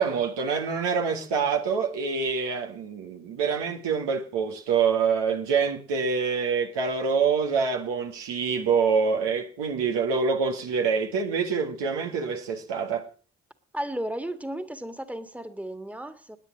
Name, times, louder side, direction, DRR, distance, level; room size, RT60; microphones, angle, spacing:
voice 1, 0.0-13.1, right 5 dB, 80° right, 1.9 m, -26 dB
voice 2, 13.7-16.4, right 1 dB, 5° right, 1.8 m, -34 dB
18.0 x 9.6 x 6.2 m
supercardioid pair, 40°, 41 cm